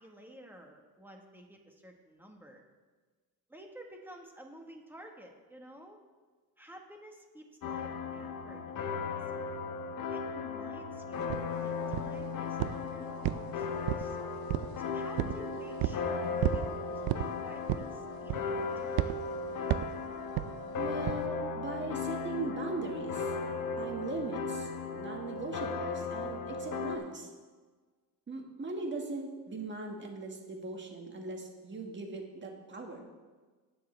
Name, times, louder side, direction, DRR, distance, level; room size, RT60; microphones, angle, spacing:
voice 1, 0.0-2.6 3.5-6.0 6.6-8.8 9.1-9.4 10.1-11.3 11.6-14.2 14.8-19.2, equal, 5° right, 2 dB, 1.5 m, -52 dB
sound 1, 7.6-27.0, left 4 dB, 65° left, 1.0 m, -36 dB
sound 2, 11.3-11.4 11.9-12.2 12.6-12.9 13.2-14.1 14.5-14.8 15.2-15.4 15.8-16.0 16.4-16.7 17.1-17.3 17.7-18.0 18.3-18.6 19.0-19.2 19.7-20.0 20.4-20.5 21.1-21.2, right 14 dB, 80° right, 0.6 m, -31 dB
voice 2, 20.8-23.3 23.8-27.3 28.3-33.1, right 3 dB, 30° right, 1 dB, 1.9 m, -39 dB
19.0 x 6.7 x 3.4 m, 1.4 s
cardioid pair, 115°, 36 cm